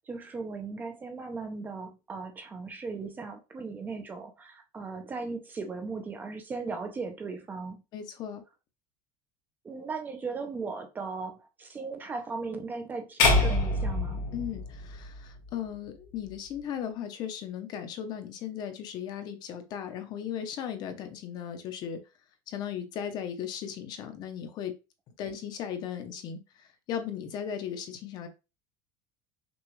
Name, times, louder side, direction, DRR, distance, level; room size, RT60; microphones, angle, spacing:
voice 1, 0.0-7.8 9.6-14.2, right 4 dB, 15° right, 0.6 m, -37 dB
voice 2, 7.9-8.4 14.3-22.0 22.5-24.7 25.2-28.3, left 9 dB, 40° left, 0.8 m, -37 dB
sound 1, 13.2-15.5, left 2 dB, 85° left, 1.9 m, -26 dB
6.1 x 2.4 x 3.1 m
cardioid pair, 165°, 11 cm